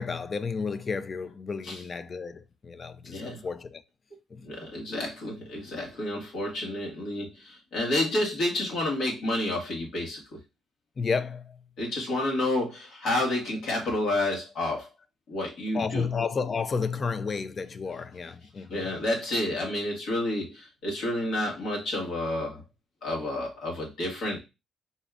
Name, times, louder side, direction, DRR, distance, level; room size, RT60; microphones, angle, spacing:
voice 1, 0.0-3.8 4.3-4.5 11.0-11.7 15.7-18.9, left 5 dB, 40° left, 0.4 m, -32 dB
voice 2, 3.1-3.4 4.4-10.2 11.8-14.9 15.3-16.1 18.7-22.6 23.0-24.4, left 1 dB, 75° left, 1.7 m, -30 dB
4.2 x 3.4 x 2.4 m
cardioid pair, 90°, 0 cm